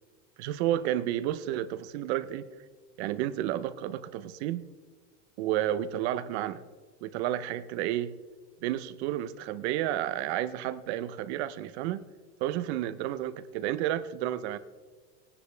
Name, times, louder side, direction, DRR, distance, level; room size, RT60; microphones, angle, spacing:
voice 1, 0.4-2.5 3.0-4.6 5.4-6.6 7.0-8.1 8.6-12.0 12.4-14.6, right 12 dB, 65° right, 14 dB, 0.8 m, -31 dB
20.0 x 10.0 x 3.4 m, 1.4 s
cardioid pair, 170°, 36 cm